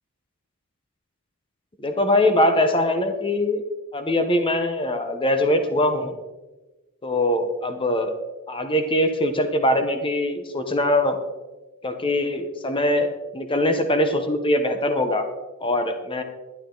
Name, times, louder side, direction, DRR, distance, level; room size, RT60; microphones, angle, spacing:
voice 1, 1.8-3.6 3.9-6.1 7.0-8.1 8.5-11.2 11.8-15.2 15.6-16.2, left 1 dB, 25° left, 7 dB, 1.1 m, -22 dB
12.0 x 10.5 x 3.9 m, 1.2 s
head